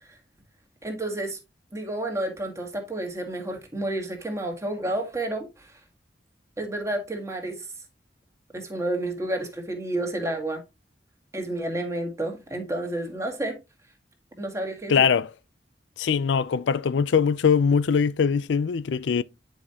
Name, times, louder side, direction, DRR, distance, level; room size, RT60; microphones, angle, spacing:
voice 1, 0.8-1.4 1.7-5.5 6.6-7.6 8.5-10.6 11.3-13.6 14.4-15.0, right 1 dB, 15° right, 1.8 m, -30 dB
voice 2, 14.9-15.3 16.0-19.2, left 6 dB, 80° left, 0.4 m, -22 dB
9.6 x 5.2 x 2.8 m
head